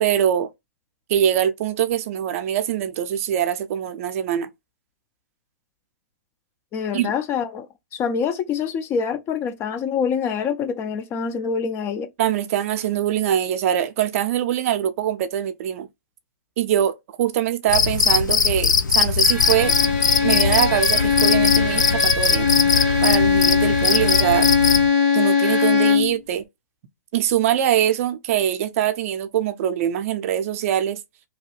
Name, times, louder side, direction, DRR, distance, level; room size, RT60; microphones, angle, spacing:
voice 1, 0.0-0.5 1.1-4.5 6.9-7.1 12.2-15.9 16.6-19.7 20.2-22.5 23.0-24.5 25.1-26.4 27.1-31.0, right 10 dB, 50° right, 0.5 m, -23 dB
voice 2, 6.7-7.7 7.9-12.1, left 6 dB, 25° left, 0.4 m, -25 dB
Cricket, 17.7-24.9, left 5 dB, 85° left, 0.5 m, -20 dB
Bowed string instrument, 19.2-26.2, left 5 dB, 55° left, 1.8 m, -20 dB
2.9 x 2.2 x 3.1 m
hypercardioid pair, 125°, 10 cm